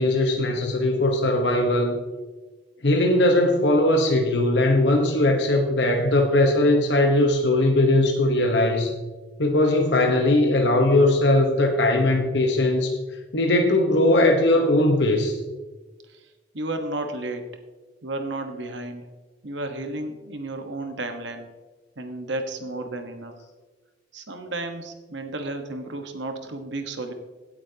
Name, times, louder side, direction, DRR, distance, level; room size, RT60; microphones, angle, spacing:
voice 1, 0.0-2.0 2.8-8.9 9.4-13.0 13.3-15.4, left 1 dB, 70° left, 3 dB, 1.1 m, -20 dB
voice 2, 16.1-17.5 18.0-19.1 19.4-21.5 22.0-23.3 24.1-27.1, right 2 dB, 75° right, 6 dB, 1.3 m, -32 dB
17.0 x 8.6 x 2.9 m, 1.3 s
head